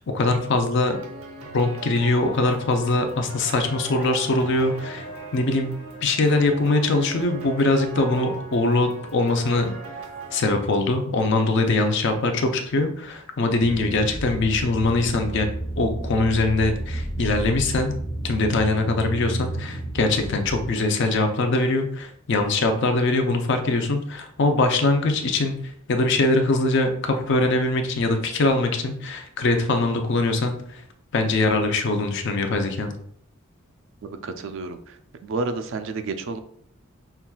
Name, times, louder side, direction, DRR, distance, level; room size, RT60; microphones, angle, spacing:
voice 1, 0.1-1.0 1.5-5.0 5.3-5.7 6.0-9.7 10.3-15.5 15.8-17.9 18.2-25.5 25.9-30.8 31.1-32.9, left 2 dB, 55° left, 5 dB, 0.5 m, -22 dB
sound 1, 0.9-10.4, right 2 dB, 80° right, 0.8 m, -39 dB
sound 2, 13.6-20.7, right 1 dB, 30° left, 0.9 m, -31 dB
voice 2, 34.0-34.8 35.2-36.4, right 3 dB, 60° right, 8 dB, 0.4 m, -30 dB
5.6 x 2.3 x 2.3 m, 0.65 s
head